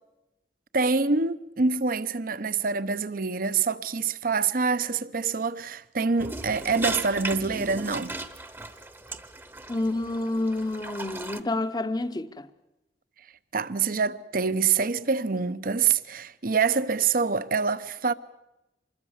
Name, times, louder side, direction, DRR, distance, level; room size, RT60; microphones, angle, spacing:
voice 1, 0.7-8.1 13.5-18.1, right 5 dB, 50° right, 0.8 m, -26 dB
sound 1, 6.2-11.4, right 2 dB, 15° right, 1.0 m, -36 dB
voice 2, 9.7-12.5, left 2 dB, 25° left, 0.8 m, -29 dB
26.0 x 21.0 x 7.3 m
head